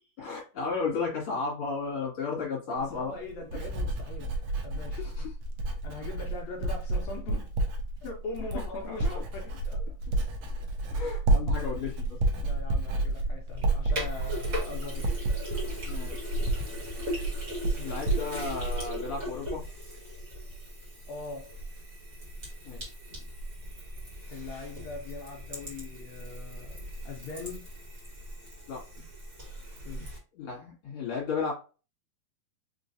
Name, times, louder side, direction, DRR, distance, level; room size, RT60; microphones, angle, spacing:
voice 1, 0.2-3.1 4.9-5.3 8.8-9.2 10.9-12.2 15.8-16.3 17.8-19.6 22.6-22.9 28.7-28.8 30.3-31.5, left 4 dB, 45° left, 2.4 m, -34 dB
voice 2, 2.8-4.3 4.6-5.1 5.8-7.5 8.0-9.9 12.4-15.1 21.1-21.5 24.3-27.7 29.8-30.1, left 3 dB, 80° left, 1.6 m, -41 dB
Writing, 2.8-19.8 20.1-20.6, right 2 dB, 90° right, 1.4 m, -31 dB
Sink (filling or washing), 13.6-30.2, equal, 35° right, 1.6 m, -40 dB
5.2 x 3.0 x 2.6 m
omnidirectional pair, 3.9 m